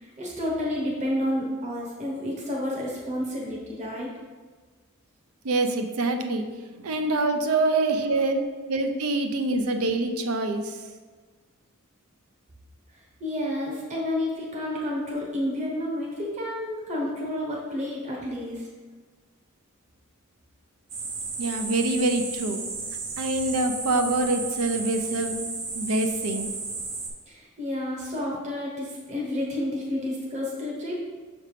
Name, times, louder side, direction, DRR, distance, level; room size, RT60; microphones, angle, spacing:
voice 1, 0.0-4.1 8.0-8.1 13.2-18.7 27.3-31.0, left 1 dB, 35° right, -3 dB, 1.1 m, -30 dB
voice 2, 5.4-8.4 8.7-10.8 21.4-22.6 23.2-25.3 25.7-26.5, right 2 dB, 75° right, 6 dB, 0.6 m, -25 dB
sound 1, 20.9-27.1, right 4 dB, 60° right, 1.0 m, -34 dB
6.6 x 3.5 x 4.9 m, 1.4 s
head